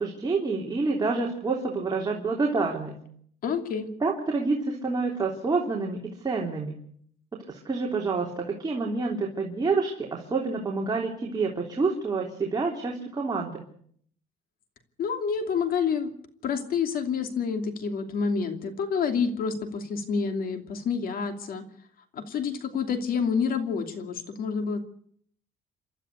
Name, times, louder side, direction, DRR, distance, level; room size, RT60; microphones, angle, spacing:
voice 1, 0.0-3.0 4.0-6.8 7.5-13.7, right 4 dB, 25° right, -1 dB, 3.3 m, -28 dB
voice 2, 3.4-3.9 15.0-16.1 16.4-21.6 22.1-24.8, left 6 dB, 60° left, 7 dB, 2.9 m, -28 dB
28.5 x 12.5 x 8.2 m, 0.64 s
cardioid pair, 110°, 17 cm